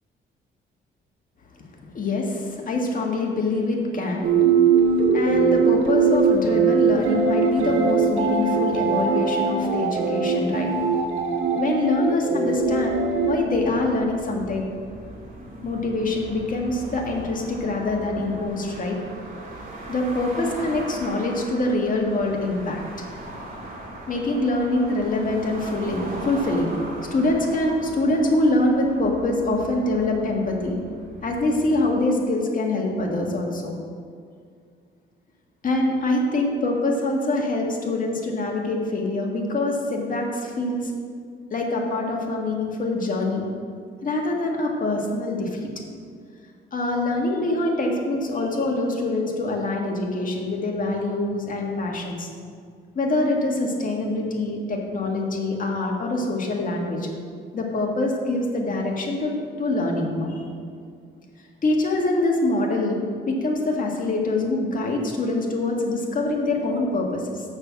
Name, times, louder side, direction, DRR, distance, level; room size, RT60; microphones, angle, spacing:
voice 1, 1.9-4.3 5.1-10.8 11.5-14.7 15.6-19.0 19.9-22.8 24.1-26.7 27.1-30.8 31.2-33.8 35.6-40.9 41.5-43.4 44.0-45.7 46.7-52.3 53.0-57.1 57.5-60.5 61.6-63.0 63.3-67.4, left 2 dB, 45° left, 0 dB, 1.8 m, -24 dB
sound 1, 4.2-13.4, right 5 dB, 85° right, 1.3 m, -21 dB
sound 2, 12.6-31.8, right 1 dB, 45° right, 2.2 m, -40 dB
6.6 x 6.1 x 7.3 m, 2.2 s
cardioid pair, 90°, 20 cm